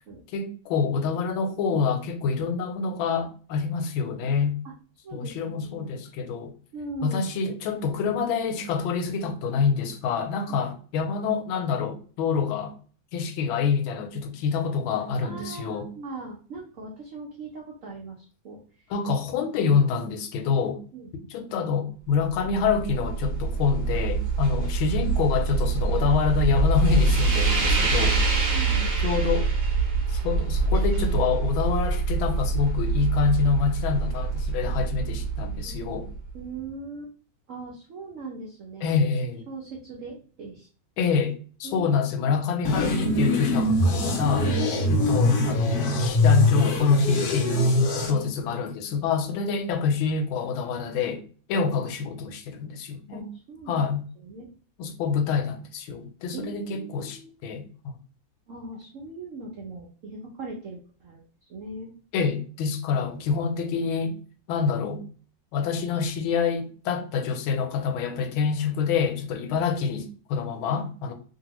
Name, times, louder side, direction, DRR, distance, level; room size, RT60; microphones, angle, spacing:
voice 1, 0.3-4.6 5.1-6.5 7.0-12.7 13.1-15.9 18.9-20.8 21.3-28.3 29.0-29.5 30.1-36.1 38.8-39.5 41.0-44.5 44.9-47.8 48.1-53.3 53.7-54.0 54.8-57.7 62.1-64.1 64.5-65.0 65.5-71.1, left 6 dB, 85° left, 1.4 m, -26 dB
voice 2, 5.0-6.0 6.7-7.2 10.5-10.6 15.2-18.9 20.9-21.3 25.0-25.1 28.5-29.0 35.6-36.0 36.3-37.1 37.5-38.9 39.5-40.7 41.6-42.4 44.1-45.0 48.0-48.6 53.1-53.8 54.2-54.5 56.3-57.3 58.5-61.2 61.5-61.9, right 3 dB, 85° right, 0.7 m, -40 dB
sound 1, 22.2-36.4, right 4 dB, 50° right, 0.9 m, -25 dB
sound 2, 42.6-48.1, left 1 dB, 70° left, 0.9 m, -22 dB
2.8 x 2.7 x 2.9 m
omnidirectional pair, 2.2 m